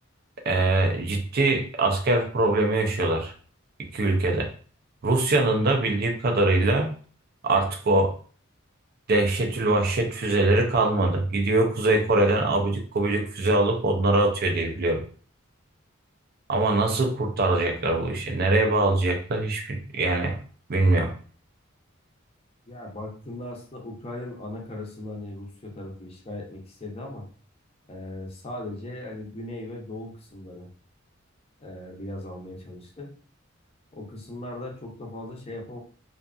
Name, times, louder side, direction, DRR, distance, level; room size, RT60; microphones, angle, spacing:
voice 1, 0.5-3.3 3.9-4.5 5.0-6.9 7.4-8.1 9.1-15.0 16.5-20.4 20.7-21.1, right 2 dB, 50° right, 4 dB, 0.5 m, -23 dB
voice 2, 22.7-27.3 27.9-30.7 31.6-33.1 33.9-35.8, left 1 dB, 30° left, 0 dB, 0.6 m, -38 dB
2.6 x 2.4 x 2.3 m, 0.42 s
head